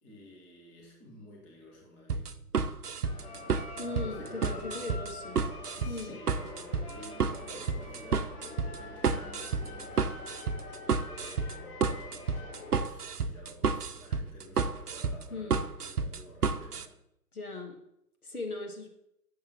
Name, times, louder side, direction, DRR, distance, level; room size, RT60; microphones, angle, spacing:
voice 1, 0.0-2.3 3.7-5.1 5.8-8.4 8.7-17.0, equal, 10° left, -2 dB, 0.7 m, -52 dB
sound 1, 2.1-16.9, right 5 dB, 80° right, 0.7 m, -31 dB
sound 2, 3.0-12.7, left 3 dB, 45° left, 2.6 m, -45 dB
voice 2, 3.8-5.4 5.8-6.1 15.3-15.6 17.3-17.8 18.2-18.9, left 3 dB, 70° left, 3 dB, 1.7 m, -38 dB
6.9 x 6.5 x 4.4 m, 0.77 s
figure-of-eight pair, 130°, 45 cm